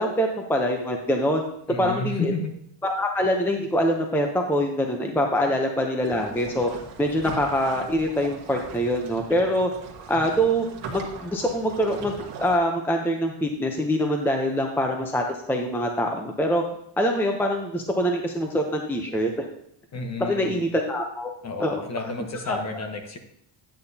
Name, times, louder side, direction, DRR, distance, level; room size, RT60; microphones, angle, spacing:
voice 1, 0.0-1.4 1.8-2.3 2.8-6.7 7.0-9.7 10.1-10.7 10.9-16.6 17.0-19.4 20.2-21.3 21.6-21.7 22.5-22.6, equal, 5° left, 3 dB, 0.6 m, -24 dB
voice 2, 1.7-2.5 5.5-5.6 19.9-20.6 21.4-23.2, left 3 dB, 35° left, 5 dB, 1.1 m, -31 dB
sound 1, 6.0-12.6, right 5 dB, 60° right, 1.4 m, -40 dB
9.8 x 8.7 x 2.8 m, 0.73 s
cardioid pair, 145°, 48 cm